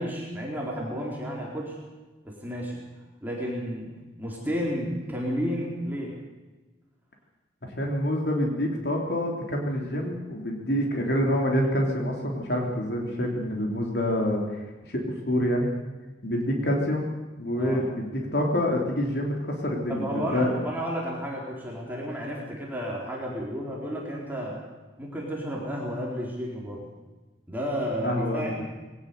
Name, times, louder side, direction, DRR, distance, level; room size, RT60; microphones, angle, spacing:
voice 1, 0.0-1.8 2.2-2.8 3.2-3.9 4.2-6.1 17.6-17.8 19.9-24.6 25.0-26.9 27.5-28.5, equal, 10° right, -3 dB, 4.2 m, -32 dB
voice 2, 7.8-15.7 16.2-17.1 17.4-19.3 19.6-20.6 28.0-28.6, equal, 65° left, 0 dB, 3.6 m, -27 dB
21.5 x 18.0 x 6.9 m, 1.2 s
head